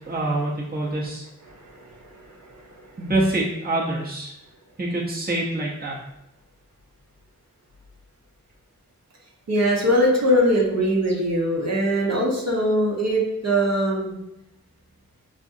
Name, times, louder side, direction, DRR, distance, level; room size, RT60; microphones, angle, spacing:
voice 1, 0.1-1.2 3.0-4.3 4.8-6.0, right 2 dB, 30° right, -4 dB, 0.9 m, -25 dB
voice 2, 1.6-2.6 9.5-14.1, equal, 60° right, -4 dB, 1.0 m, -22 dB
4.9 x 2.4 x 2.7 m, 0.86 s
cardioid pair, 45°, 29 cm